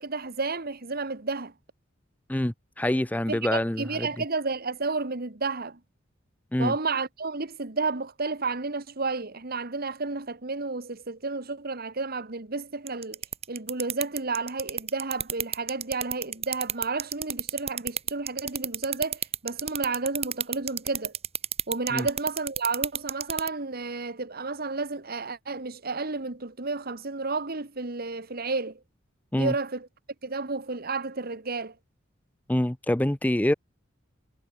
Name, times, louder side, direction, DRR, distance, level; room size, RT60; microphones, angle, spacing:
voice 1, 0.0-1.5 3.3-5.8 6.6-13.2 13.5-21.1 21.7-28.8 29.4-29.9 30.2-31.7, right 3 dB, 50° right, 1.8 m, -31 dB
voice 2, 2.3-4.1 6.5-6.7 21.9-22.1 29.3-29.5 32.5-33.5, left 1 dB, 10° left, 0.5 m, -26 dB
sound 1, 12.9-23.5, right 9 dB, 30° right, 2.7 m, -29 dB
head